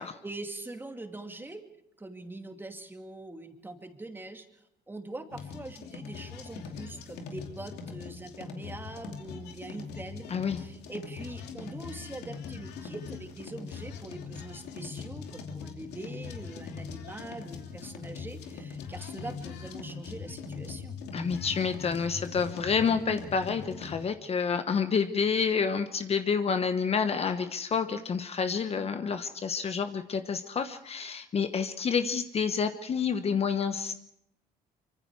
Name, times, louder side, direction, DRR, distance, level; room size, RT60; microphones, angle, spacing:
voice 1, 0.0-1.6 2.0-4.5 4.9-10.3 10.5-21.0, right 2 dB, 10° right, 5 dB, 2.5 m, -43 dB
sound 1, 5.3-24.0, left 5 dB, 80° left, 2.7 m, -41 dB
voice 2, 10.3-10.6 21.1-33.9, left 6 dB, 35° left, 9 dB, 1.2 m, -29 dB
24.5 x 24.5 x 4.8 m, 0.79 s
cardioid pair, 110°, 17 cm